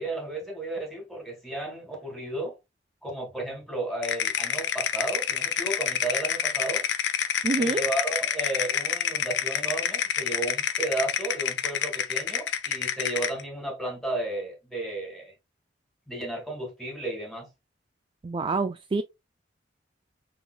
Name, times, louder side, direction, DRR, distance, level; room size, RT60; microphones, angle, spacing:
voice 1, 0.0-2.5 3.0-6.8 7.6-15.3 16.1-17.5, right 2 dB, ahead, 2.3 m, -33 dB
sound 1, 4.0-13.4, left 8 dB, 65° left, 0.6 m, -28 dB
voice 2, 7.4-7.8 18.2-19.0, right 3 dB, 30° right, 0.3 m, -26 dB
5.9 x 3.9 x 2.2 m
head